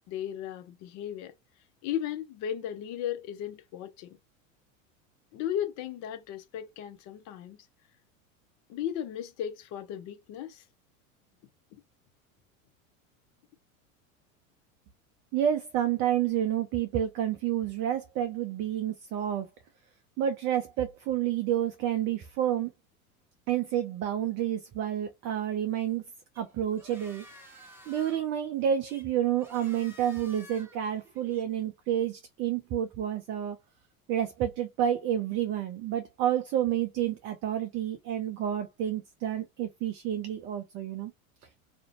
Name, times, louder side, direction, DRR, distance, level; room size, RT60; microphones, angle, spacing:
voice 1, 0.1-1.3 1.8-4.2 5.3-7.6 8.7-10.6, left 10 dB, 40° left, 0.6 m, -35 dB
voice 2, 15.3-19.5 20.2-22.7 23.5-26.0 26.4-27.2 27.9-33.6 34.1-41.1, right 10 dB, 30° right, 0.4 m, -29 dB
sound 1, 26.3-31.5, equal, 5° right, 0.8 m, -53 dB
2.5 x 2.1 x 2.8 m
hypercardioid pair, 85°, 42 cm